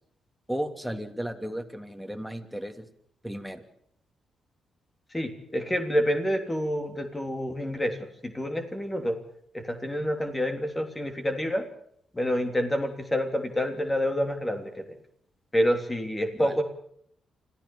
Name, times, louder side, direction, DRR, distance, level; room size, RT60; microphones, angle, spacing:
voice 1, 0.5-2.8 3.2-3.6 16.4-16.6, equal, ahead, 7 dB, 3.0 m, -34 dB
voice 2, 5.1-8.0 8.2-9.2 9.5-11.6 12.1-15.0 15.5-16.6, equal, 20° left, 5 dB, 3.3 m, -28 dB
25.5 x 15.0 x 7.2 m, 0.69 s
supercardioid pair, 50°, 0 cm